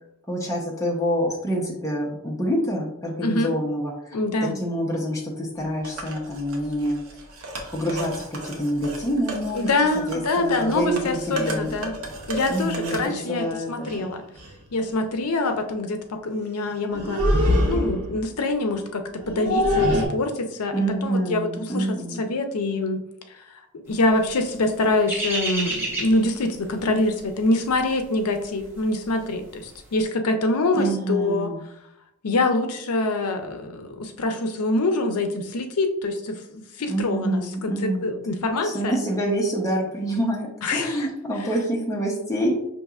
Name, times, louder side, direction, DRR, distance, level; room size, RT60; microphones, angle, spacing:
voice 1, 0.3-7.0 7.7-9.7 10.1-11.8 12.5-14.1 20.7-22.3 30.7-31.6 36.9-38.1 38.6-42.5, equal, 15° left, -2 dB, 0.6 m, -27 dB
voice 2, 3.2-3.5 4.1-4.6 9.5-12.0 12.3-14.2 14.7-17.2 17.7-23.0 23.7-31.5 32.2-38.9 40.6-41.1, left 2 dB, 80° left, 6 dB, 0.6 m, -25 dB
sound 1, 5.8-13.1, right 1 dB, 65° right, 0.7 m, -36 dB
sound 2, 12.0-12.2 13.4-13.5 13.9-14.0 14.4-14.6 16.9-18.2 19.1-20.1, equal, 85° right, 1.0 m, -22 dB
sound 3, 24.1-29.2 29.5-29.7, right 1 dB, 10° right, 1.0 m, -31 dB
5.3 x 2.8 x 2.4 m, 0.81 s
head